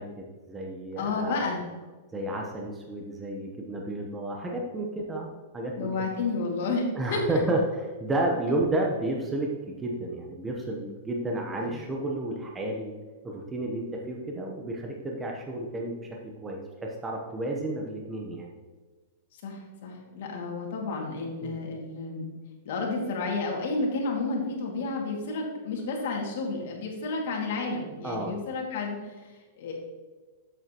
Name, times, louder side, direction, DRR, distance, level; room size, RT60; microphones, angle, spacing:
voice 1, 0.0-1.4 2.1-6.1 7.0-12.9 13.2-15.9 16.4-18.5 21.4-21.6 28.0-28.4, right 1 dB, 15° right, 0 dB, 0.9 m, -31 dB
voice 2, 1.0-1.6 5.8-7.2 11.6-11.7 19.3-22.3 22.7-29.7, left 3 dB, 65° left, -1 dB, 2.1 m, -31 dB
7.7 x 7.6 x 2.9 m, 1.3 s
hypercardioid pair, 145°, 0 cm